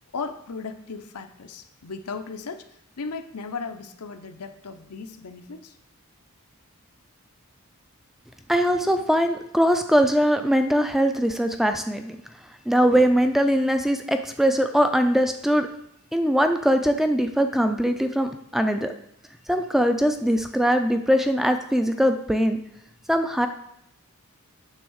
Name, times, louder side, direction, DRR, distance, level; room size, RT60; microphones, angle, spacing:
voice 1, 0.1-5.7, left 4 dB, 90° left, 8 dB, 0.7 m, -36 dB
voice 2, 8.5-12.2 12.7-15.7 16.1-18.9 19.5-22.6 23.1-23.5, equal, ahead, 7 dB, 0.4 m, -21 dB
9.1 x 3.5 x 6.3 m, 0.78 s
head